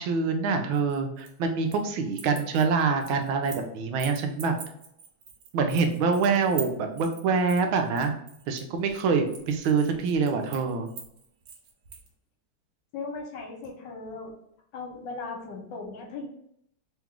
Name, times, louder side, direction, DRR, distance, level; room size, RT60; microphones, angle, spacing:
voice 1, 0.0-4.5 5.5-8.1 8.5-10.9, right 5 dB, 85° right, 5 dB, 1.4 m, -25 dB
sound 1, 0.7-1.9 2.1-3.7 4.0-12.1, right 8 dB, 65° right, 1.3 m, -43 dB
voice 2, 12.9-14.3 14.7-16.3, left 3 dB, 70° left, 2 dB, 1.4 m, -37 dB
3.5 x 3.0 x 3.6 m, 0.74 s
omnidirectional pair, 2.2 m